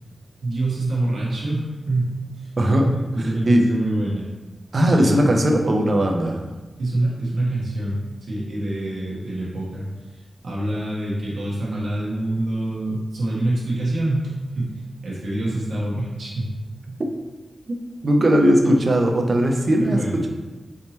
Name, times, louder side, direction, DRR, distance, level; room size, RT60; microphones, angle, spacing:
voice 1, 0.4-4.3 4.8-5.3 6.8-14.3 14.6-16.5 16.9-17.0 19.8-20.3, right 1 dB, 80° right, -6 dB, 1.1 m, -26 dB
voice 2, 2.6-2.9 3.5-3.6 4.7-6.5 17.7-17.8 18.0-20.3, equal, 45° right, 2 dB, 0.5 m, -18 dB
3.5 x 2.9 x 4.1 m, 1.2 s
wide cardioid pair, 120°, 0 cm